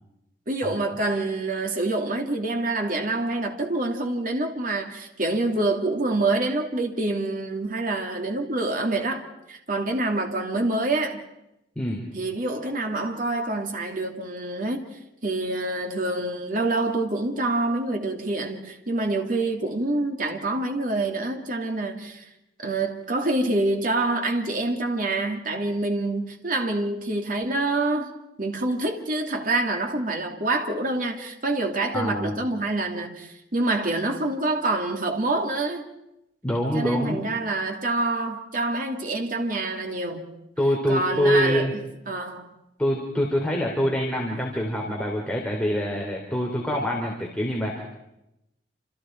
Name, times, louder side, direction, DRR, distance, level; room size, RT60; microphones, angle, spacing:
voice 1, 0.5-9.2 9.5-11.2 12.1-14.8 15.2-22.2 22.6-28.1 28.4-35.9 36.7-40.4 40.9-41.8 42.1-42.5, right 2 dB, 50° right, 2.8 m, -26 dB
voice 2, 31.9-32.4 36.4-37.2 40.6-41.7 42.8-47.8, equal, 5° left, 3.5 m, -25 dB
29.0 x 27.5 x 4.6 m
head